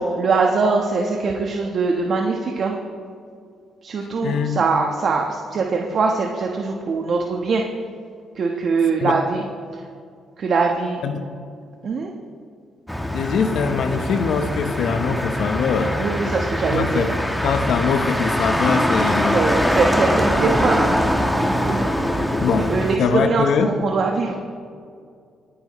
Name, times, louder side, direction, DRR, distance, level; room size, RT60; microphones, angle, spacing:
voice 1, 0.0-2.8 3.8-7.6 8.3-9.5 9.7-9.8 10.4-11.0 11.8-12.1 16.0-17.1 19.3-21.0 21.7-21.9 22.7-24.3, right 4 dB, 55° right, 1 dB, 1.2 m, -22 dB
voice 2, 4.0-4.6 9.0-9.1 11.0-11.3 13.1-16.1 16.7-17.1 17.4-19.5 22.4-22.7 23.0-23.7, left 6 dB, 70° left, 7 dB, 1.0 m, -22 dB
Motor vehicle (road), 12.9-23.0, equal, 5° left, 1.3 m, -22 dB
24.5 x 10.0 x 3.1 m, 2.3 s
cardioid pair, 90°, 0 cm